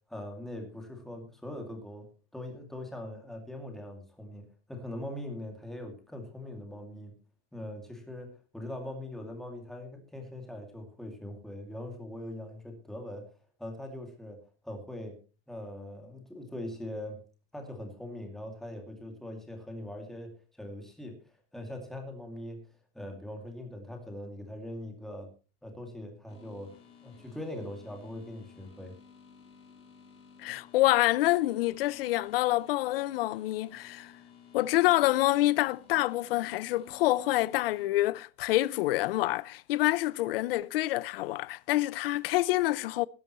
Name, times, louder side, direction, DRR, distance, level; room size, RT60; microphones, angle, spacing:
voice 1, 0.1-7.2 7.5-13.3 13.6-14.4 14.6-15.2 15.5-17.2 17.5-22.7 22.9-25.3 25.6-29.0, left 1 dB, ahead, 2.4 m, -41 dB
sound 1, 26.3-37.9, left 6 dB, 15° left, 2.8 m, -55 dB
voice 2, 30.4-34.1 34.5-43.1, left 17 dB, 55° left, 0.7 m, -27 dB
20.0 x 11.0 x 3.1 m
supercardioid pair, 175°, 35 cm